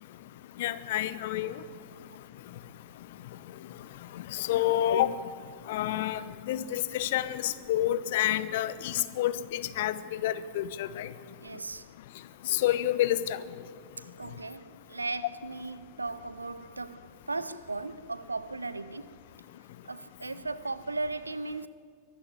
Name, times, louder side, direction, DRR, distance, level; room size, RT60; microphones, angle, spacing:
voice 1, 0.6-1.6 4.1-5.2 5.7-11.1 12.4-13.4, left 12 dB, 55° left, 0.7 m, -29 dB
voice 2, 11.4-11.9 14.0-19.2 19.8-21.7, right 3 dB, 80° right, 0.8 m, -37 dB
23.5 x 14.0 x 9.7 m
figure-of-eight pair, 90°, 0 cm